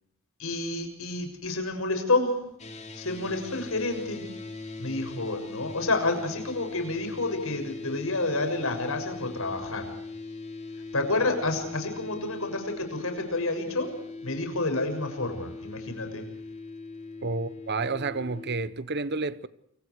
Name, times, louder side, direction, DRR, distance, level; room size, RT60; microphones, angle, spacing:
voice 1, 0.4-2.4 2.9-4.2 4.8-9.9 10.9-13.9 14.2-16.2, left 2 dB, 75° left, 6.8 m, -29 dB
sound 1, 2.6-18.7, left 3 dB, 35° left, 4.3 m, -40 dB
voice 2, 17.2-19.5, right 3 dB, 50° right, 1.0 m, -30 dB
29.5 x 25.0 x 4.8 m
head